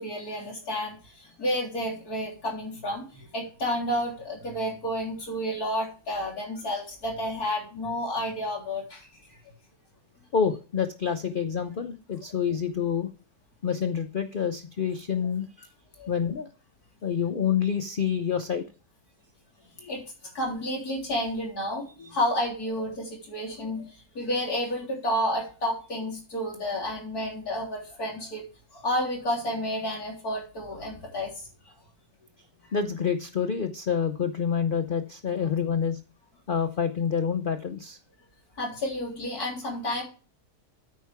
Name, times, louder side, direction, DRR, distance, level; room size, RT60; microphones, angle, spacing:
voice 1, 0.0-9.1 16.0-16.1 19.8-20.0 20.3-28.4 28.7-31.3 32.6-32.7 38.6-40.0, equal, 75° left, -1 dB, 4.0 m, -31 dB
voice 2, 10.3-13.1 13.6-15.7 16.1-16.5 17.0-18.6 32.7-36.0 36.5-38.0, left 7 dB, 50° left, 9 dB, 0.7 m, -27 dB
9.3 x 9.2 x 3.5 m, 0.35 s
omnidirectional pair, 1.6 m